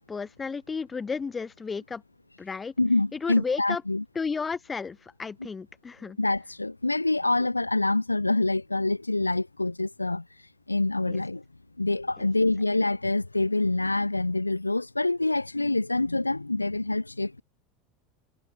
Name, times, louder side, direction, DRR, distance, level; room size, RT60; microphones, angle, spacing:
voice 1, 0.0-2.0 2.4-2.7 3.1-3.8 4.2-6.2 11.1-11.2, left 5 dB, 20° left, 1.9 m, -33 dB
voice 2, 2.8-4.0 6.2-10.2 10.7-11.4 11.8-17.4, left 2 dB, 85° left, 1.8 m, -26 dB
figure-of-eight pair, 80°, 0 cm